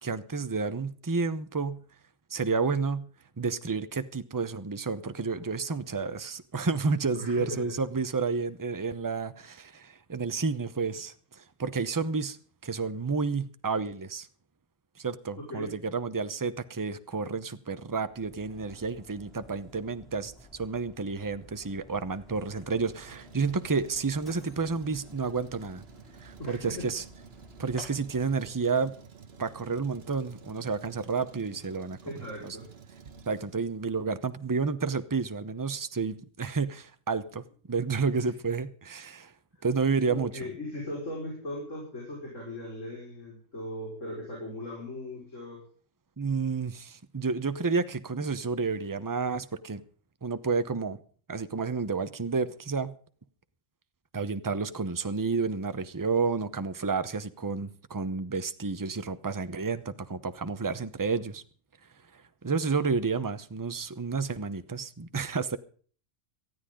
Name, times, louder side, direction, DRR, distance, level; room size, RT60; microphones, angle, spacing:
voice 1, 0.0-1.8 2.3-3.1 3.4-12.4 12.6-14.3 15.0-25.8 26.2-27.0 27.6-28.9 29.4-32.0 32.4-32.6 33.3-37.4 37.7-39.3 39.6-40.3 46.2-49.8 50.2-51.0 51.3-52.9 54.1-61.4 62.4-65.6, right 4 dB, 20° right, 0.7 m, -30 dB
voice 2, 7.1-7.7 15.4-15.7 26.4-26.9 32.0-32.6 38.1-38.3 39.6-39.7 40.1-45.6, left 1 dB, 80° left, 5.6 m, -38 dB
Mechanisms, 18.0-28.7, equal, ahead, 6.2 m, -53 dB
Truck, 22.8-34.0, right 6 dB, 55° right, 1.4 m, -52 dB
18.5 x 14.0 x 3.8 m
omnidirectional pair, 1.3 m